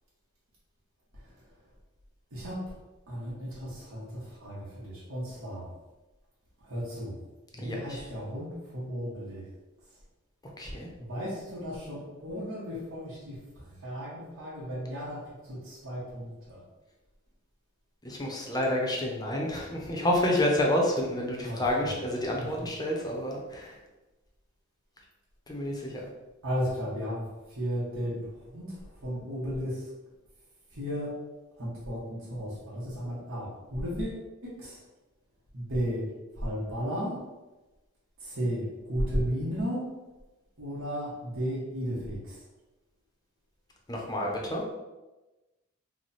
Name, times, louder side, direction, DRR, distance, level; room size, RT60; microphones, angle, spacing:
voice 1, 2.3-2.6 3.1-5.7 6.6-7.2 7.5-9.5 11.0-16.6 21.4-21.9 22.3-22.7 26.4-29.8 30.7-31.1 31.6-34.8 35.5-36.1 36.4-37.2 38.2-39.9 40.6-42.4, equal, 70° right, -7 dB, 1.1 m, -34 dB
voice 2, 7.6-8.0 10.6-10.9 18.0-23.8 25.5-26.0 43.9-44.6, left 1 dB, 20° left, -1 dB, 0.6 m, -29 dB
3.2 x 2.2 x 4.0 m, 1.1 s
head